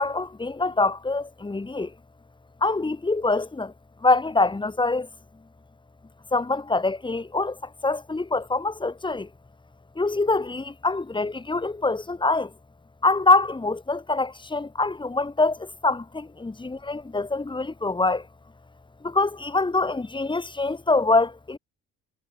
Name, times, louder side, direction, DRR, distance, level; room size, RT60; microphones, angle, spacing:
voice 1, 0.0-1.9 2.6-3.7 4.0-5.1 6.3-9.3 9.9-12.5 13.0-18.3 19.0-21.6, left 3 dB, 15° left, 1.4 m, -24 dB
cardioid pair, 90°, 30 cm